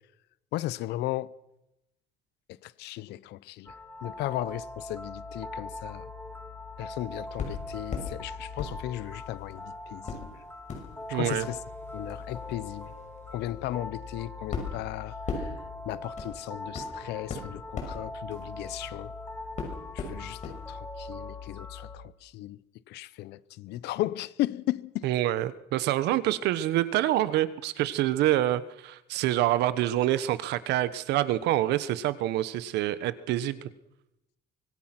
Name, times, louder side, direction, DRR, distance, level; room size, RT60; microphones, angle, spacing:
voice 1, 0.5-1.3 2.5-3.8 4.0-6.1 6.8-10.5 11.1-11.6 11.9-12.9 13.3-15.6 15.8-19.1 19.9-22.6 22.9-25.1, left 15 dB, 80° left, 0.8 m, -36 dB
sound 1, 3.6-22.0, left 2 dB, 10° left, 3.5 m, -41 dB
sound 2, 7.4-8.1 8.6-9.5 10.0-19.1 19.6-20.6 20.9-21.0, left 4 dB, 45° left, 6.2 m, -39 dB
voice 2, 11.1-11.5 25.0-33.6, right 14 dB, 85° right, 1.3 m, -26 dB
24.5 x 22.0 x 6.1 m
cardioid pair, 110°, 17 cm